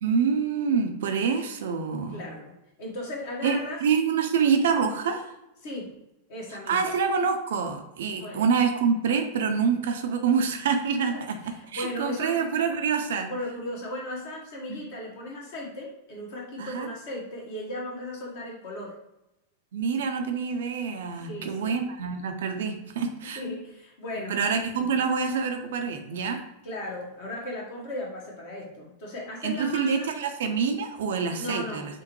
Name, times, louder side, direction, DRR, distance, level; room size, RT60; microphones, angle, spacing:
voice 1, 0.0-2.2 3.4-5.3 6.5-13.3 14.7-14.8 16.6-16.9 19.7-23.4 24.3-26.4 29.4-31.9, right 6 dB, 60° right, 5 dB, 0.5 m, -26 dB
voice 2, 2.1-2.5 2.8-3.8 5.6-6.0 6.3-6.9 8.2-8.5 11.1-11.2 11.5-12.4 13.3-19.0 21.3-21.8 23.2-24.4 26.6-30.1 31.3-32.0, left 1 dB, 50° left, -2 dB, 1.2 m, -36 dB
5.1 x 2.1 x 2.9 m, 0.89 s
figure-of-eight pair, 90°, 0 cm